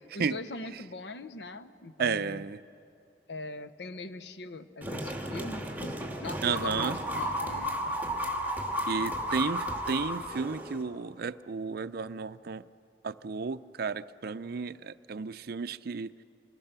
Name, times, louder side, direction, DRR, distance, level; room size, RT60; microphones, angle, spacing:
voice 1, 0.1-2.4 3.3-8.1, left 3 dB, 70° left, 11 dB, 0.9 m, -41 dB
voice 2, 2.0-2.6 6.4-7.0 8.9-12.6 13.0-16.2, right 5 dB, 60° right, 13 dB, 0.5 m, -33 dB
sound 1, 4.8-10.8, equal, 10° right, 2.4 m, -33 dB
27.0 x 20.5 x 6.8 m, 2.6 s
head